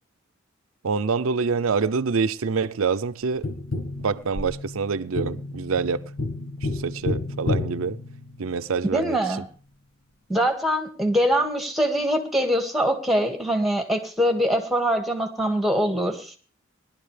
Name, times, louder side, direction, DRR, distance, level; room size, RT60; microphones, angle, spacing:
voice 1, 0.8-3.4 4.0-6.0 6.6-8.0 8.4-9.2, right 5 dB, 85° right, 0.6 m, -26 dB
Tap, 3.4-8.7 11.3-11.4, left 2 dB, 70° left, 1.6 m, -31 dB
voice 2, 8.9-9.5 10.3-16.3, equal, ahead, 1.8 m, -23 dB
20.0 x 12.0 x 3.3 m
head